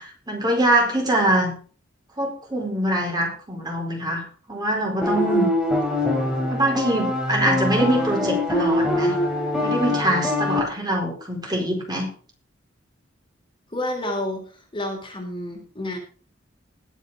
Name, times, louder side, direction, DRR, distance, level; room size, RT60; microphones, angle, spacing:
voice 1, 0.0-1.5 2.2-4.2 4.5-5.5 6.5-9.2 9.6-12.1, right 1 dB, 20° right, 0 dB, 4.6 m, -23 dB
sound 1, 5.0-10.6, left 1 dB, 5° right, 3.1 m, -23 dB
voice 2, 13.7-14.4 14.7-16.0, left 1 dB, 25° left, 2 dB, 3.4 m, -29 dB
20.5 x 7.3 x 3.7 m, 0.40 s
head